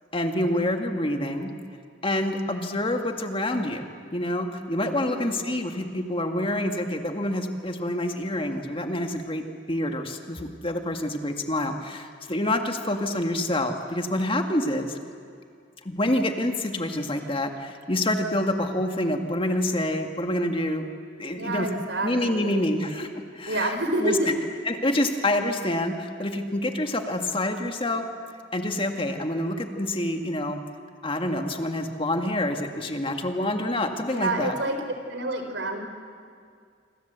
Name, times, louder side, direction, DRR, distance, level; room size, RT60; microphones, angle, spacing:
voice 1, 0.1-1.5 2.0-15.0 15.9-20.9 21.2-21.7 22.0-23.7 24.0-24.2 24.7-28.1 28.5-30.6 31.0-34.5, left 1 dB, 30° left, 5 dB, 1.9 m, -27 dB
voice 2, 5.0-5.5 21.3-22.6 23.5-24.4 34.1-34.8 35.1-35.8, right 2 dB, 70° right, 6 dB, 4.0 m, -28 dB
27.5 x 25.5 x 8.1 m, 2.2 s
head